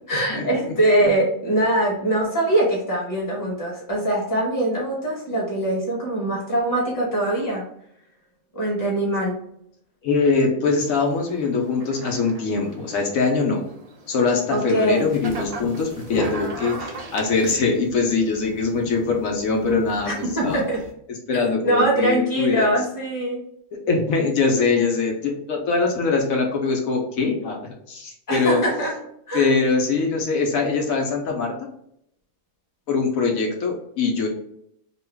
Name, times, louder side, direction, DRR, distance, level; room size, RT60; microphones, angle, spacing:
voice 1, 0.1-7.6 8.5-9.4 14.5-15.1 20.0-20.8 21.3-23.4 28.3-28.9 29.3-29.5, right 1 dB, 15° left, -4 dB, 1.1 m, -22 dB
voice 2, 10.0-13.6 14.1-20.6 21.3-22.7 23.9-28.6 29.3-31.5 32.9-34.3, left 4 dB, 80° left, 1 dB, 1.1 m, -22 dB
sound 1, 10.7-17.5, right 3 dB, 70° right, 0.3 m, -39 dB
sound 2, 15.1-20.9, left 2 dB, 45° left, 0.8 m, -37 dB
3.0 x 2.2 x 3.3 m, 0.72 s
omnidirectional pair, 1.4 m